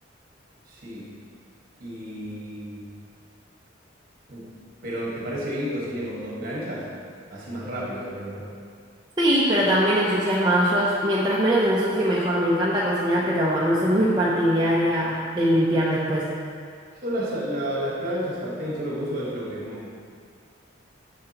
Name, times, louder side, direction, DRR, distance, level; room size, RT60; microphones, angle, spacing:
voice 1, 0.7-1.1 1.8-2.8 4.3-4.5 4.8-6.9 7.3-8.5 17.0-20.0, equal, 45° right, -4 dB, 1.4 m, -31 dB
voice 2, 9.2-16.3, equal, 20° right, -6 dB, 0.5 m, -21 dB
7.1 x 6.7 x 2.9 m, 2.2 s
head